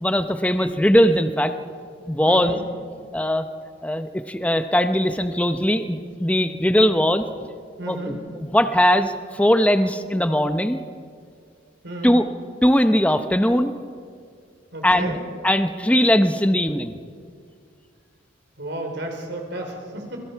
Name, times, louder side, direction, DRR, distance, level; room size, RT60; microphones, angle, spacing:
voice 1, 0.0-1.5 2.1-2.6 3.1-3.5 3.8-7.2 7.9-10.8 12.0-12.2 12.6-13.7 14.8-15.2 15.4-16.9, equal, 5° left, 8 dB, 0.8 m, -20 dB
voice 2, 2.3-2.6 6.5-6.6 7.8-8.1 11.8-12.1 14.7-15.2 18.6-20.2, right 1 dB, 65° right, 2 dB, 4.2 m, -32 dB
26.5 x 22.5 x 4.7 m, 2.2 s
head